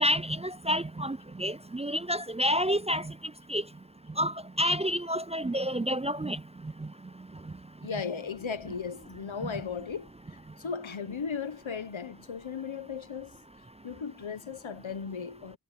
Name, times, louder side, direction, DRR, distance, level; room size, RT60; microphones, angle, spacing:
voice 1, 0.0-3.1 3.5-3.6 4.2-6.4, equal, 15° right, 0.3 m, -29 dB
voice 2, 7.8-10.1 10.6-13.3 13.8-15.6, left 6 dB, 90° left, 1.3 m, -36 dB
wide cardioid pair, 55°, 46 cm